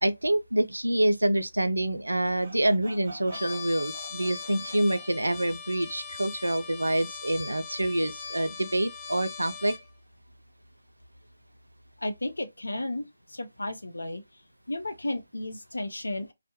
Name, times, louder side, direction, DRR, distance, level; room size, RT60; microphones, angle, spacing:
voice 1, 0.0-9.8, right 1 dB, 85° right, 0.3 m, -27 dB
Sawing, 2.2-5.4, right 2 dB, 45° right, 0.6 m, -47 dB
Trumpet, 3.3-9.8, left 5 dB, 25° left, 0.8 m, -40 dB
voice 2, 12.0-14.2 14.7-16.3, left 1 dB, 80° left, 0.5 m, -33 dB
2.2 x 2.0 x 2.9 m
figure-of-eight pair, 150°, 0 cm